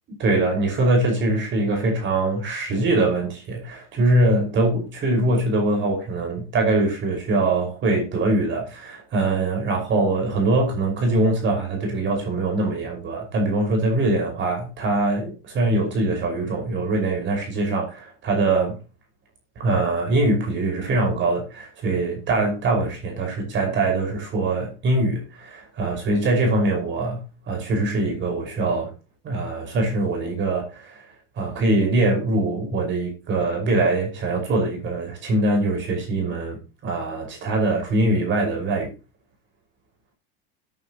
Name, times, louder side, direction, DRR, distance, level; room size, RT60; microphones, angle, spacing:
voice 1, 0.2-18.8 19.6-28.9 29.2-31.0 31.4-38.9, right 2 dB, 40° right, 5.4 m, -23 dB
17.0 x 9.7 x 3.0 m
supercardioid pair, 130°, 31 cm